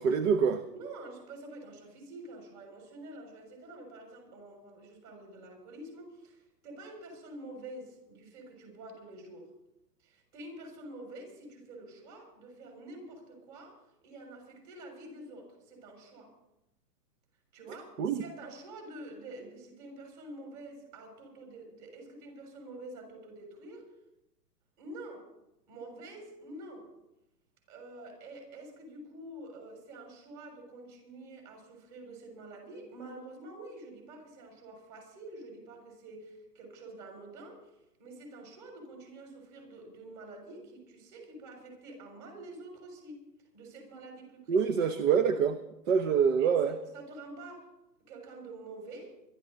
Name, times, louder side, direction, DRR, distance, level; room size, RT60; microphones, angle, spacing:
voice 1, 0.0-0.6 18.0-18.2 44.5-45.6 45.9-46.8, right 6 dB, 50° right, 10 dB, 1.1 m, -25 dB
voice 2, 0.7-9.5 10.0-16.3 17.5-23.9 24.8-25.3 25.7-26.9 27.7-37.7 38.0-43.2 43.5-45.0 46.4-47.7 48.1-49.2, right 2 dB, 35° right, 2 dB, 6.7 m, -47 dB
24.0 x 13.0 x 4.0 m, 0.90 s
hypercardioid pair, 145°, 49 cm